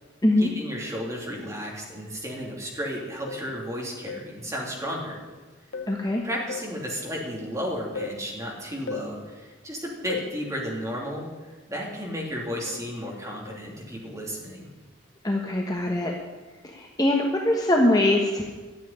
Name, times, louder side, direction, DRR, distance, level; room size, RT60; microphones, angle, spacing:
voice 1, 0.4-5.2 6.2-14.7, equal, 15° right, -3 dB, 3.0 m, -33 dB
sound 1, 3.3-3.6 4.1-4.4 5.7-6.0 6.5-6.8 8.0-8.3 8.9-9.2 10.1-10.4 12.7-12.9 13.5-13.7, left 4 dB, 70° left, 0.9 m, -36 dB
voice 2, 5.9-6.2 15.2-16.1 16.6-18.5, left 1 dB, 20° left, 0 dB, 1.2 m, -22 dB
12.5 x 7.5 x 9.9 m, 1.3 s
head